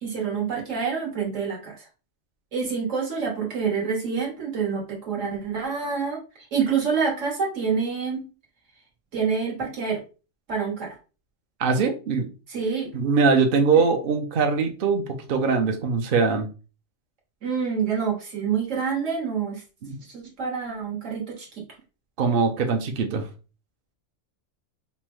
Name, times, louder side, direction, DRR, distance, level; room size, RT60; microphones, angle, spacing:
voice 1, 0.0-1.8 2.5-6.2 6.5-8.2 9.1-10.0 10.5-10.9 12.5-12.9 17.4-19.6 20.1-21.5, right 6 dB, 75° right, -1 dB, 1.7 m, -27 dB
voice 2, 11.6-12.3 12.9-16.5 19.8-20.0 22.2-23.3, right 5 dB, 55° right, 4 dB, 0.7 m, -22 dB
5.3 x 2.1 x 3.0 m, 0.33 s
omnidirectional pair, 1.3 m